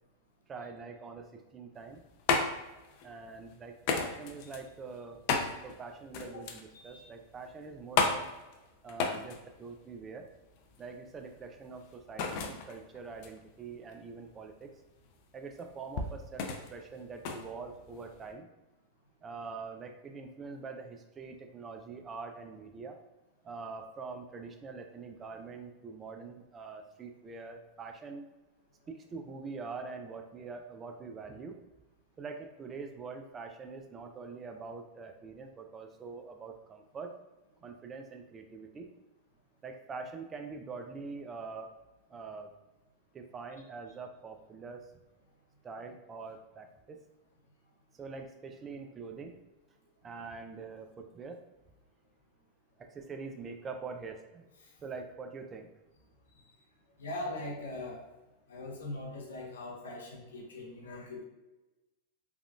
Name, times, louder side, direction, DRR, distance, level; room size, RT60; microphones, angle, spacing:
voice 1, 0.5-2.0 3.0-8.3 8.8-10.3 10.8-14.7 15.3-18.5 19.2-23.0 23.4-28.3 28.9-31.6 32.2-37.1 37.6-38.9 39.6-41.7 42.1-42.5 43.1-44.9 45.6-47.0 48.0-49.4 50.0-51.4 52.8-54.5 54.8-55.7, right 4 dB, 25° right, 5 dB, 0.4 m, -44 dB
sound 1, 1.7-18.3, left 5 dB, 55° left, 0.4 m, -35 dB
voice 2, 6.7-7.1 57.0-58.0 58.5-61.2, left 2 dB, 85° left, -1 dB, 0.8 m, -41 dB
3.5 x 2.4 x 2.3 m, 1.1 s
hypercardioid pair, 110°, 0 cm